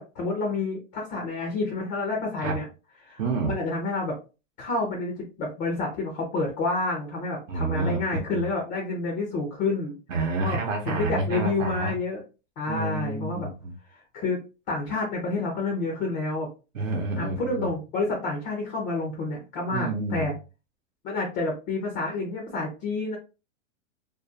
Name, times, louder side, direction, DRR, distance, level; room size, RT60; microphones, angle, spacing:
voice 1, 0.0-2.6 3.0-3.2 3.5-4.2 4.6-10.0 10.4-10.6 10.9-12.2 12.6-13.5 13.9-16.5 17.2-20.3 21.0-23.2, left 3 dB, 20° left, 0.4 m, -29 dB
voice 2, 3.2-3.6 7.5-8.0 8.3-8.4 10.1-11.9 12.7-13.7 16.7-17.6 19.7-20.4, right 3 dB, 85° right, 0.8 m, -29 dB
2.4 x 2.3 x 2.5 m
hypercardioid pair, 135°, 38 cm